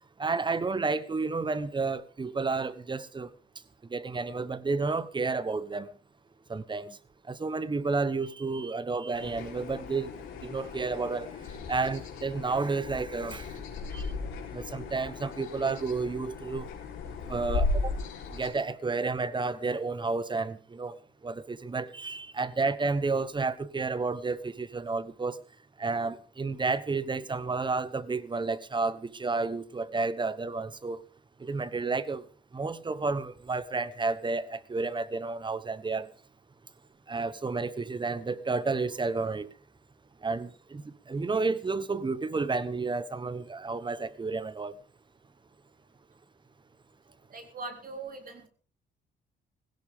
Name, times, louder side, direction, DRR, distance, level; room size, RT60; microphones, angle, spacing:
voice 1, 0.2-3.3 3.9-5.9 6.5-7.0 7.3-10.1 10.4-11.3 11.7-13.6 13.9-14.1 14.5-16.7 17.3-17.9 18.3-20.9 21.2-25.4 25.8-31.0 31.4-32.2 32.5-36.1 37.1-39.5 40.2-44.7, right 4 dB, 25° right, 1.1 m, -31 dB
sound 1, 9.1-18.5, left 3 dB, 85° left, 4.1 m, -36 dB
voice 2, 47.3-48.5, right 3 dB, 45° right, 4.0 m, -41 dB
16.5 x 16.0 x 3.6 m
cardioid pair, 90°, 20 cm